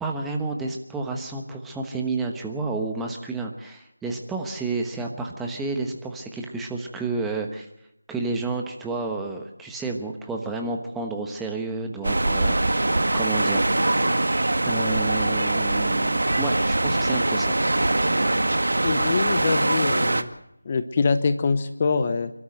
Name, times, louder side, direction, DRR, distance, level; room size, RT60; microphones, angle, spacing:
voice 1, 0.0-7.7 8.1-13.7 14.6-17.6, right 3 dB, 5° right, 2 dB, 1.2 m, -30 dB
sound 1, 12.0-20.2, right 2 dB, 70° right, 1.9 m, -22 dB
voice 2, 18.8-20.3 20.6-22.3, left 4 dB, 25° left, 10 dB, 0.9 m, -24 dB
29.5 x 13.0 x 7.9 m, 0.80 s
figure-of-eight pair, 175°, 0 cm